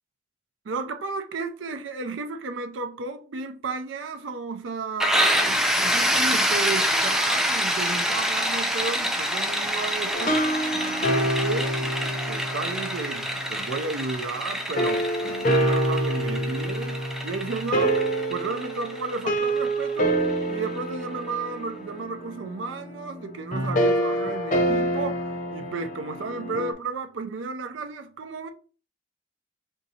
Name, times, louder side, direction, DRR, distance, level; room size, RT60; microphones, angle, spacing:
voice 1, 0.6-10.6 11.0-12.0 12.3-18.0 18.3-20.2 20.5-28.5, right 4 dB, 90° right, 0.5 m, -33 dB
sound 1, 5.0-20.6, equal, 5° right, 0.4 m, -27 dB
sound 2, 10.1-13.5 14.8-26.7, right 1 dB, 45° left, 0.5 m, -27 dB
5.0 x 2.7 x 2.7 m
head